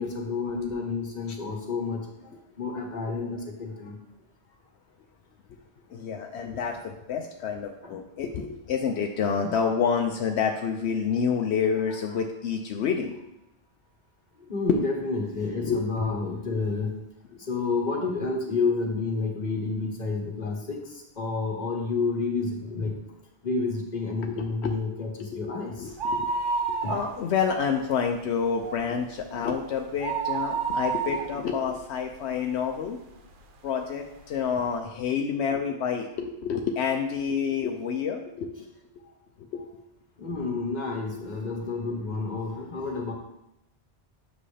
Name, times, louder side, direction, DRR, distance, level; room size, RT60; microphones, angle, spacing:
voice 1, 0.0-2.3 2.6-4.0 7.8-8.0 9.4-9.6 11.3-11.5 11.8-12.2 14.4-16.9 17.4-22.9 23.4-26.0 26.8-27.0 40.2-43.1, left 4 dB, 45° left, 0 dB, 1.4 m, -30 dB
voice 2, 5.9-13.3 14.7-14.8 15.6-15.8 24.2-24.8 25.2-26.3 26.7-33.0 33.6-38.7 39.5-39.7 41.1-41.2, left 6 dB, 80° left, 3 dB, 0.9 m, -28 dB
sound 1, 25.9-27.5 27.8-27.9 28.4-32.8 33.3-33.4 34.2-34.3 34.5-34.6, right 5 dB, 55° right, 0.8 m, -30 dB
7.5 x 6.0 x 3.3 m, 0.87 s
omnidirectional pair, 1.1 m